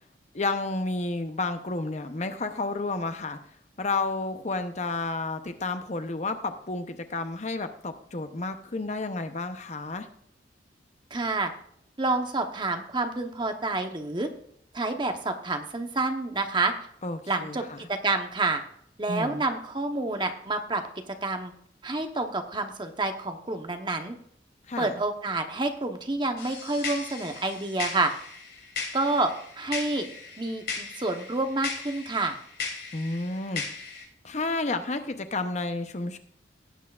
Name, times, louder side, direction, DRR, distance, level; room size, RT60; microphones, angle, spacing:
voice 1, 0.3-3.4 3.8-10.1 17.0-17.8 19.1-19.4 24.7-24.9 32.9-33.6 34.2-36.2, left 3 dB, 40° left, 8 dB, 0.7 m, -31 dB
voice 2, 11.1-11.5 12.0-14.3 14.7-16.7 17.3-18.6 19.0-20.8 21.1-21.5 21.8-24.2 24.8-28.1 28.9-29.3 29.6-30.1 30.4-32.4, right 2 dB, 25° right, 6 dB, 0.9 m, -28 dB
sound 1, 26.4-34.0, left 4 dB, 60° left, 3.2 m, -37 dB
18.0 x 8.2 x 2.4 m, 0.66 s
head